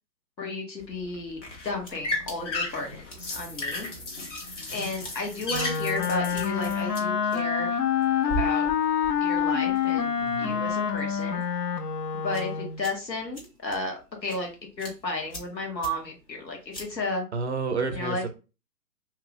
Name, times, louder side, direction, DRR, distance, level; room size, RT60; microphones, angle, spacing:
voice 1, 0.4-3.9 4.7-7.8 8.4-8.7 9.2-10.1 10.4-11.4 12.2-14.5 14.8-17.2 17.9-18.2, left 2 dB, 85° left, 1.5 m, -33 dB
sound 1, 0.8-7.0, left 2 dB, 45° left, 1.0 m, -35 dB
sound 2, 1.1-17.1, right 2 dB, 20° left, 0.7 m, -44 dB
Wind instrument woodwind instrument, 5.5-12.9, left 8 dB, 70° left, 0.6 m, -27 dB
voice 2, 10.2-10.7 17.3-18.3, right 4 dB, 45° right, 0.5 m, -30 dB
2.8 x 2.5 x 3.4 m
figure-of-eight pair, 135°, 50 cm